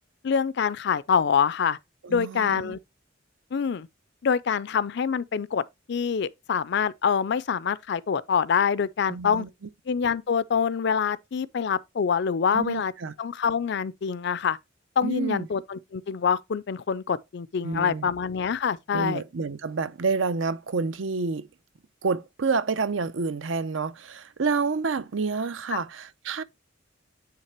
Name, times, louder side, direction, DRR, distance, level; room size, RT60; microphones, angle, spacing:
voice 1, 0.2-1.8 2.1-2.8 3.5-3.9 4.2-5.6 5.9-9.4 9.9-12.9 13.2-14.6 15.0-19.2 25.7-25.8, left 6 dB, 60° left, 0.4 m, -25 dB
voice 2, 2.0-2.7 9.1-9.5 12.5-13.1 15.0-15.5 17.6-18.1 18.9-21.5 22.0-26.4, right 4 dB, 80° right, 0.6 m, -28 dB
9.6 x 3.3 x 4.4 m
head